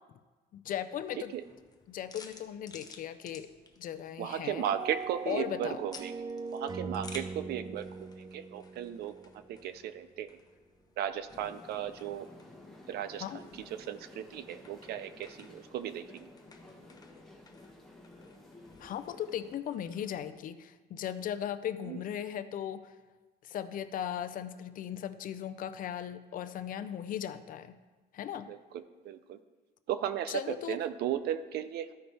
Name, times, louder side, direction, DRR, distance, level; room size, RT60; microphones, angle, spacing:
voice 1, 0.5-1.3 1.9-3.5 3.8-4.7 5.3-5.9 13.2-13.4 18.8-22.9 23.4-27.8 28.1-28.5 30.3-30.8, left 10 dB, 55° left, 11 dB, 0.5 m, -37 dB
sound 1, 1.0-20.4, left 4 dB, 25° left, 0.8 m, -56 dB
voice 2, 4.2-6.1 6.5-9.1 9.5-10.3 11.0-12.3 12.9-13.2 13.5-16.3 21.8-22.0 28.4-29.4 29.9-31.9, right 10 dB, 70° right, 12 dB, 0.6 m, -36 dB
sound 2, 4.6-9.8, right 4 dB, 25° right, 0.4 m, -41 dB
sound 3, 11.3-19.5, left 2 dB, ahead, 1.3 m, -53 dB
13.0 x 5.2 x 3.3 m, 1.3 s
cardioid pair, 110°, 17 cm